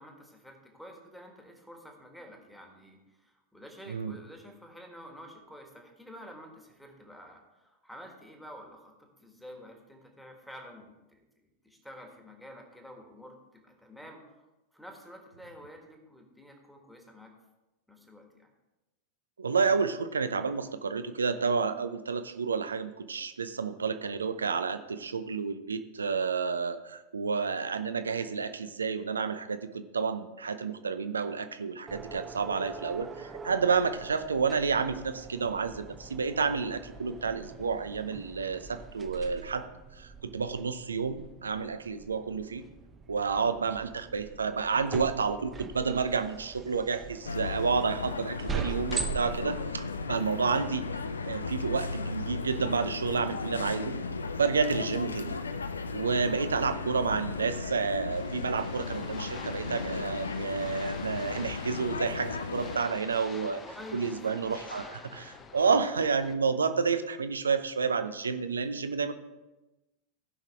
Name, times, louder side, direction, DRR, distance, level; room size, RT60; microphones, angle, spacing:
voice 1, 0.0-17.3 17.9-18.5 63.6-64.1, equal, ahead, 2 dB, 1.7 m, -49 dB
voice 2, 19.4-39.7 40.0-42.6 43.1-50.9 51.3-54.0 54.4-55.3 55.9-63.6 63.9-69.1, right 5 dB, 75° right, 10 dB, 0.6 m, -30 dB
sound 1, 31.9-50.8, right 5 dB, 20° right, 0.8 m, -42 dB
sound 2, 47.2-62.8, left 4 dB, 75° left, 0.5 m, -35 dB
sound 3, 58.1-66.3, left 4 dB, 25° left, 0.8 m, -48 dB
16.5 x 5.7 x 3.5 m, 1.1 s
figure-of-eight pair, 90°, 0 cm